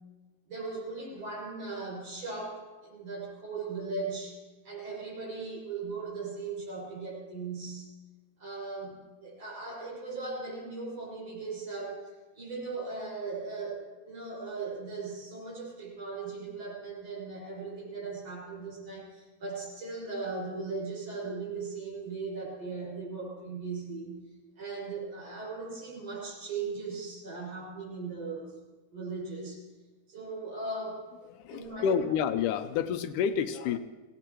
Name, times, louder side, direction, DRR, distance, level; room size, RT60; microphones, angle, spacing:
voice 1, 0.5-4.4 4.6-7.9 8.4-12.1 12.4-24.2 24.6-28.6 28.9-29.6 30.1-31.1 31.5-32.0, right 4 dB, 50° right, -4 dB, 7.2 m, -38 dB
voice 2, 31.4-33.8, left 7 dB, 80° left, 10 dB, 2.1 m, -29 dB
23.0 x 17.5 x 3.1 m, 1.2 s
omnidirectional pair, 3.7 m